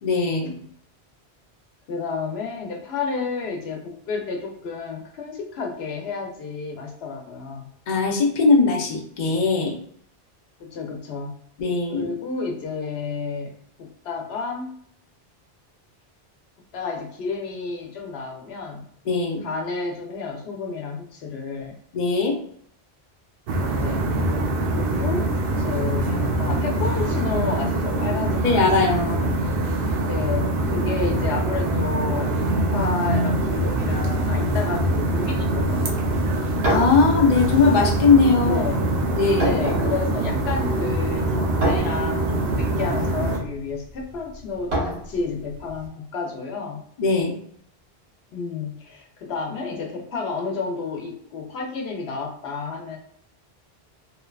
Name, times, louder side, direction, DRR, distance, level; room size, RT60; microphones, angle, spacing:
voice 1, 0.0-0.6 7.9-9.8 11.6-12.1 19.1-19.5 21.9-22.4 28.4-29.4 36.6-38.7 39.2-39.6 47.0-47.4, left 4 dB, 55° left, 1 dB, 0.6 m, -20 dB
voice 2, 1.9-7.7 10.6-11.3 11.9-13.5 13.8-14.7 16.7-18.8 19.4-21.7 23.8-24.1 24.7-25.3 25.6-28.4 28.8-28.9 30.0-36.2 38.4-38.8 39.4-46.8 48.3-53.0, left 4 dB, 80° left, 1 dB, 0.9 m, -31 dB
sound 1, 23.5-43.4, right 1 dB, 65° right, 0.7 m, -24 dB
sound 2, 34.5-45.9, right 1 dB, 85° right, 1.4 m, -31 dB
2.8 x 2.2 x 2.3 m, 0.63 s
omnidirectional pair, 1.1 m